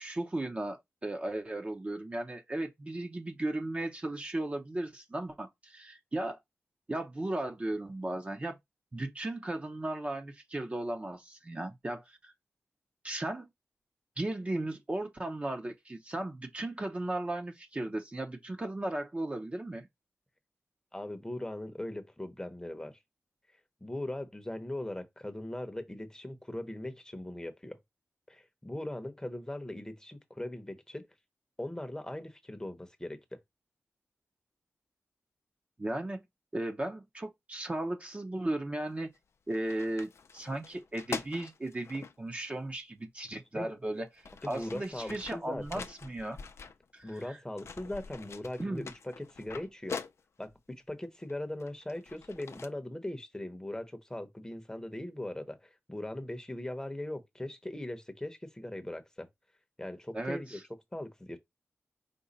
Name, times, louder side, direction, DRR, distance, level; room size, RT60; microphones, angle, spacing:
voice 1, 0.0-6.4 6.9-8.6 8.9-12.3 13.0-13.5 14.2-19.9 35.8-36.2 36.5-39.1 39.5-44.1 44.5-46.4 46.9-47.4 48.6-48.8 60.1-60.6, right 1 dB, 25° right, 0.7 m, -36 dB
voice 2, 20.9-23.0 23.8-27.8 28.3-31.1 31.6-33.2 43.5-43.7 44.4-45.8 47.0-50.0 50.4-59.3 59.8-60.6 60.9-61.4, left 1 dB, 15° left, 0.8 m, -40 dB
sound 1, 38.9-39.2 39.5-42.1 43.3-43.4 44.0-47.3 47.6-50.6 51.2-52.7, left 5 dB, 65° left, 0.4 m, -44 dB
5.2 x 2.2 x 3.9 m
wide cardioid pair, 95°, 5 cm